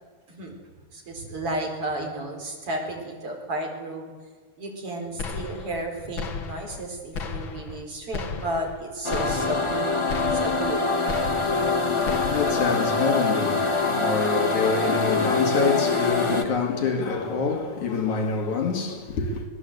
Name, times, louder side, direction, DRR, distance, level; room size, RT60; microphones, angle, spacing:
voice 1, 0.9-4.1 4.6-9.6 10.3-10.9, right 1 dB, 45° right, 5.1 m, -33 dB
sound 1, 5.2-5.9 6.2-6.9 7.2-7.8 8.1-8.8 9.1-9.8 10.1-10.8 11.1-11.8 12.1-12.8, left 5 dB, 45° left, 2.0 m, -34 dB
sound 2, 9.0-16.4, left 3 dB, 20° left, 0.7 m, -24 dB
voice 2, 11.5-19.4, left 5 dB, 65° left, 3.3 m, -27 dB
24.5 x 18.5 x 8.0 m
omnidirectional pair, 3.7 m